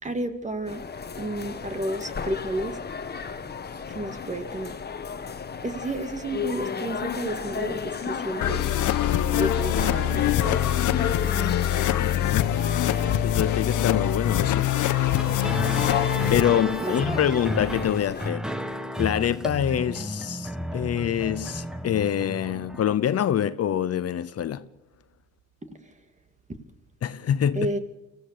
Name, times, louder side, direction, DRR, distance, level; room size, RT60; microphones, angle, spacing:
voice 1, 0.0-0.8 1.2-2.8 3.9-4.7 5.6-8.6 9.4-10.8 11.2-11.3 16.8-17.3 25.8-25.9 27.5-27.8, right 1 dB, 25° right, 2.4 m, -31 dB
sound 1, 0.7-18.3, left 6 dB, 35° left, 1.4 m, -34 dB
sound 2, 8.4-16.4, left 12 dB, 80° left, 1.1 m, -24 dB
voice 2, 12.0-12.6 13.2-14.7 15.8-18.5 19.0-24.7 27.0-27.7, left 10 dB, 55° left, 0.8 m, -26 dB
sound 3, 15.1-22.9, equal, ahead, 1.5 m, -32 dB
24.5 x 16.0 x 6.8 m
cardioid pair, 90°, 30 cm